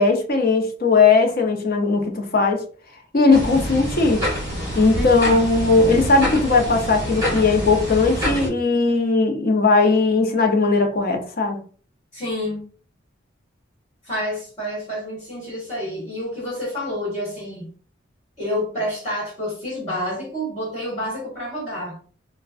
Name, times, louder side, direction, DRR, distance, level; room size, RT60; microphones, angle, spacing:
voice 1, 0.0-2.6 3.1-4.2 4.7-11.6, left 3 dB, 45° left, 0.7 m, -18 dB
sound 1, 3.3-8.5, equal, 15° right, 1.4 m, -26 dB
voice 2, 4.9-5.4 12.1-12.6 14.0-17.7 18.4-22.0, equal, 20° left, 1.7 m, -28 dB
4.4 x 2.2 x 2.4 m
head